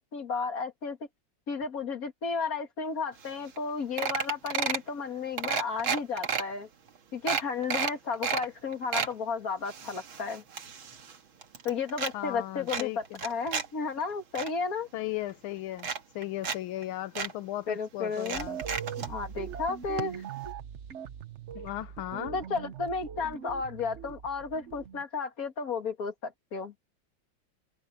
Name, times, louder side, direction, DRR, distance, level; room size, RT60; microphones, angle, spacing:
voice 1, 0.1-1.0 1.5-6.7 7.1-10.4 11.6-14.9 17.7-18.5 19.0-20.5 22.3-26.7, left 5 dB, 45° left, 2.5 m, -33 dB
sound 1, 3.3-3.4 3.6-3.7 4.0-4.9 5.4-6.4 6.9-7.0 7.3-8.5 8.7-9.1 9.7-11.2 11.4-12.1 12.7-13.7 14.0-14.5 15.3-15.4 15.8-16.6 16.8-16.9 17.2-17.3 18.2-19.1 20.0-20.1 20.4-20.5, right 6 dB, 80° right, 2.7 m, -32 dB
voice 2, 12.1-13.2 14.9-15.9 16.1-18.6 21.5-22.4, left 15 dB, 85° left, 1.5 m, -36 dB
sound 2, 18.3-25.0, right 8 dB, 55° right, 0.8 m, -41 dB
open air
omnidirectional pair, 2.2 m